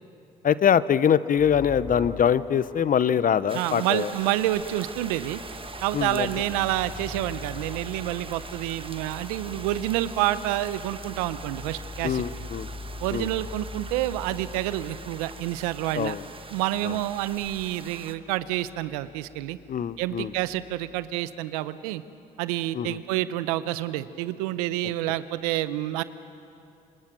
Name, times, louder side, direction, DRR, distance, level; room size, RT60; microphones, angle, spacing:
voice 1, 0.4-4.1 5.9-6.3 12.0-12.7 13.1-13.3 15.9-16.2 16.8-17.0 19.7-20.3 22.7-23.0, left 8 dB, 50° left, 16 dB, 0.9 m, -23 dB
sound 1, 1.1-8.5, left 2 dB, 85° left, 3.9 m, -51 dB
sound 2, 1.4-3.1 4.1-21.1, left 3 dB, 30° left, 5.0 m, -43 dB
sound 3, 3.5-18.2, right 4 dB, 30° right, 1.4 m, -43 dB
voice 2, 3.5-5.4 5.8-12.2 13.0-16.1 16.5-19.6 20.0-22.0 22.4-26.0, right 14 dB, 90° right, 15 dB, 0.8 m, -28 dB
26.5 x 26.5 x 6.2 m, 2.7 s
hypercardioid pair, 55°, 19 cm